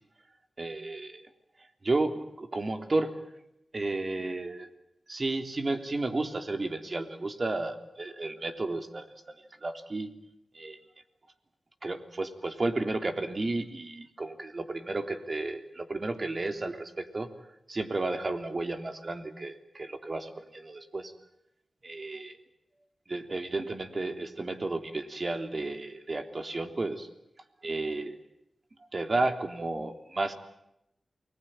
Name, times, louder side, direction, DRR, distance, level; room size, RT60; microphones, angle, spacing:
voice 1, 0.6-1.3 1.8-3.2 3.7-4.7 5.1-9.3 9.6-10.1 10.5-10.8 11.8-17.3 17.7-21.1 21.8-22.3 23.1-27.1 27.6-28.2 28.9-30.3, right 2 dB, 45° right, 7 dB, 3.5 m, -32 dB
29.0 x 21.0 x 9.1 m, 0.82 s
cardioid pair, 55°, 0 cm